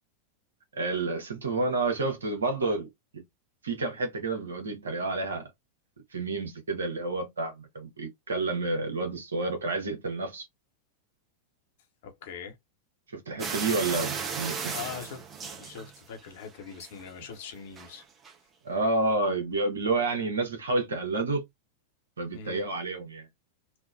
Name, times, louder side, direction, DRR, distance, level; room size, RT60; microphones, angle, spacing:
voice 1, 0.7-2.9 3.1-3.2 3.6-5.5 6.1-10.5 13.1-14.7 18.6-21.4 22.2-23.3, right 3 dB, 70° right, 1.0 m, -29 dB
voice 2, 12.0-12.6 14.7-18.0 22.3-22.6, left 7 dB, 55° left, 0.8 m, -42 dB
sound 1, 13.4-16.3 16.6-17.1 17.8-17.9 18.2-18.3, right 5 dB, 25° right, 0.7 m, -35 dB
3.4 x 2.2 x 2.4 m
figure-of-eight pair, 90°, 0 cm